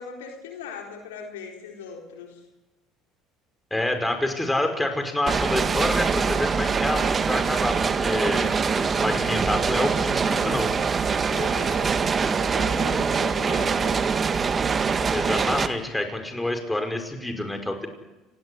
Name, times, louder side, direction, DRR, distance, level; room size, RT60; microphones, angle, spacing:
voice 1, 0.0-2.4 11.3-12.0 12.4-14.0, left 6 dB, 80° left, 2 dB, 4.2 m, -39 dB
voice 2, 3.7-10.7 15.1-17.9, left 1 dB, 10° left, 6 dB, 5.5 m, -27 dB
sound 1, 5.3-15.7, right 5 dB, 35° right, 1.8 m, -24 dB
29.5 x 18.5 x 9.7 m, 1.1 s
hypercardioid pair, 70°, 0 cm